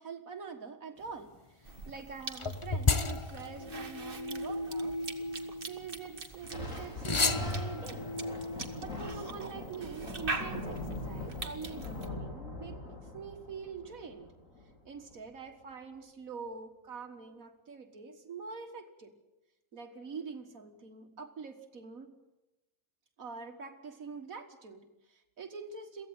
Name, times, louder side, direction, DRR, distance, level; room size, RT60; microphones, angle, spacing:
voice 1, 0.0-5.0 5.6-8.1 8.8-12.8 13.1-14.3 14.8-19.2 19.7-22.2 23.2-26.1, right 5 dB, 75° right, 5 dB, 2.0 m, -45 dB
Cough / Chewing mastication, 1.6-12.1, right 3 dB, 40° right, 1.8 m, -44 dB
sound 1, 2.4-6.2 7.0-9.3, left 3 dB, 25° left, 0.8 m, -34 dB
Thunder, 6.4-15.2, left 2 dB, 65° left, 4.5 m, -42 dB
23.0 x 15.5 x 9.5 m, 0.99 s
omnidirectional pair, 1.5 m